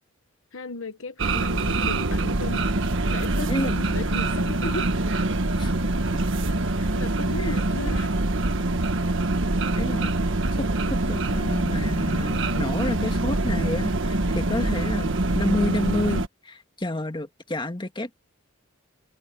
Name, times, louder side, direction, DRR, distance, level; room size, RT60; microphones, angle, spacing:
voice 1, 0.5-2.7 3.1-5.0 6.5-8.1 10.0-10.1, left 3 dB, 70° left, 1.1 m, -35 dB
sound 1, 1.2-16.3, right 2 dB, 65° right, 1.5 m, -24 dB
voice 2, 9.8-10.1 10.5-18.1, left 1 dB, 25° left, 1.9 m, -30 dB
head